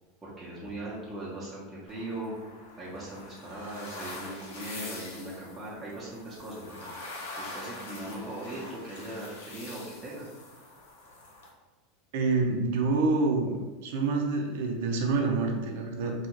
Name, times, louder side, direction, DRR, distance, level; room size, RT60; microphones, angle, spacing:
voice 1, 0.2-2.3 2.8-6.9 7.4-10.3, right 1 dB, 15° right, -8 dB, 0.8 m, -39 dB
sound 1, 1.9-11.5, left 2 dB, 90° left, 0.7 m, -44 dB
voice 2, 12.1-13.6 13.8-16.1, right 3 dB, 70° right, 2 dB, 0.5 m, -27 dB
2.4 x 2.3 x 3.0 m, 1.2 s
supercardioid pair, 115°, 0 cm